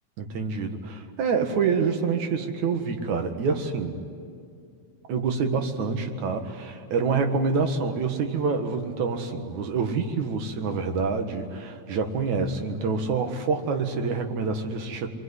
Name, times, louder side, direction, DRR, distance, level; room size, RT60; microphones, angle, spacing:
voice 1, 0.2-4.0 5.1-15.1, right 5 dB, 75° right, 5 dB, 3.1 m, -27 dB
27.5 x 22.0 x 9.8 m, 2.3 s
omnidirectional pair, 3.4 m